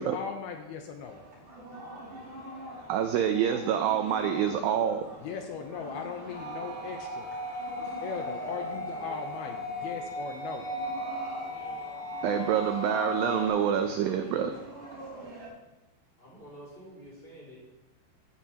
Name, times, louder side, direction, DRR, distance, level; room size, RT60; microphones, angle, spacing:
voice 1, 0.0-1.5 5.2-7.3 7.8-10.7, left 6 dB, 80° left, 4 dB, 2.6 m, -38 dB
sound 1, 1.0-15.5, right 1 dB, 35° right, 5.3 m, -45 dB
voice 2, 2.9-5.1 12.2-14.5, right 9 dB, 85° right, 7 dB, 2.1 m, -27 dB
sound 2, 6.3-13.5, left 1 dB, 30° left, 2.0 m, -36 dB
voice 3, 16.2-17.6, equal, 15° left, -5 dB, 4.4 m, -48 dB
14.5 x 12.5 x 2.9 m, 1.1 s
omnidirectional pair, 4.8 m